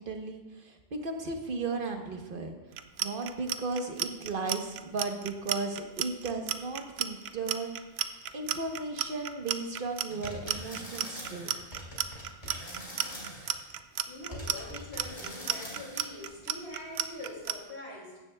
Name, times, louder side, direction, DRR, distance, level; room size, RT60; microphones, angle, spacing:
voice 1, 0.0-2.6 3.0-7.7 8.3-11.5, right 3 dB, 55° right, 4 dB, 1.3 m, -35 dB
Clock, 2.7-17.5, right 10 dB, 80° right, 0.9 m, -33 dB
sound 1, 10.1-13.6 14.3-16.3, equal, 45° left, 3.3 m, -43 dB
voice 2, 14.1-18.2, left 1 dB, 80° left, -3 dB, 3.0 m, -44 dB
15.5 x 10.5 x 2.3 m, 1.1 s
omnidirectional pair, 1.1 m